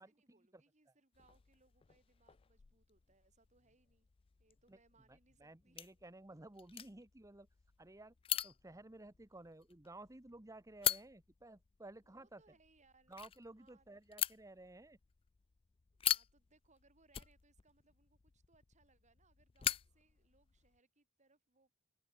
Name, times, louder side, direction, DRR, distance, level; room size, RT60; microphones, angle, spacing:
voice 1, 0.0-4.1 4.4-5.8 6.7-6.8 12.0-13.1 13.6-14.0 16.0-21.7, right 3 dB, 35° right, 5.0 m, -73 dB
sound 1, 1.1-20.8, left 11 dB, 25° left, 0.3 m, -44 dB
voice 2, 5.1-7.5 7.8-8.1 8.4-12.4 13.1-15.0, right 2 dB, 15° right, 0.9 m, -55 dB
head